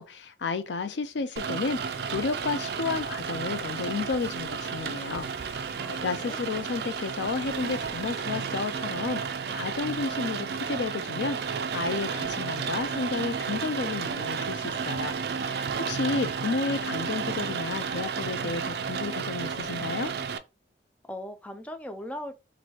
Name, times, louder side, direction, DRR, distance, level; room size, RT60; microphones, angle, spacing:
voice 1, 0.0-9.2 9.5-11.4 11.7-15.2 15.4-20.1, left 4 dB, 80° left, 0.5 m, -32 dB
Rain, 1.4-20.4, right 6 dB, 65° right, 0.4 m, -32 dB
voice 2, 5.7-6.4 21.0-22.3, left 1 dB, 10° left, 0.3 m, -39 dB
3.1 x 2.6 x 4.1 m
head